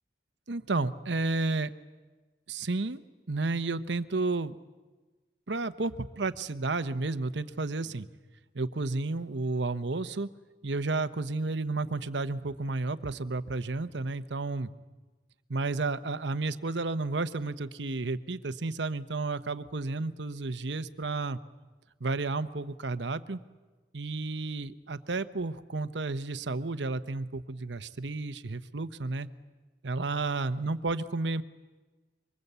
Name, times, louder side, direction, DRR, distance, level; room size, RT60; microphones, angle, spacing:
voice 1, 0.5-1.7 2.5-3.0 3.3-4.6 5.5-8.1 8.5-10.3 10.6-14.7 15.5-21.4 22.0-23.4 23.9-29.3 29.8-31.4, right 3 dB, 75° right, 12 dB, 1.0 m, -32 dB
26.0 x 24.5 x 8.2 m, 1.3 s
head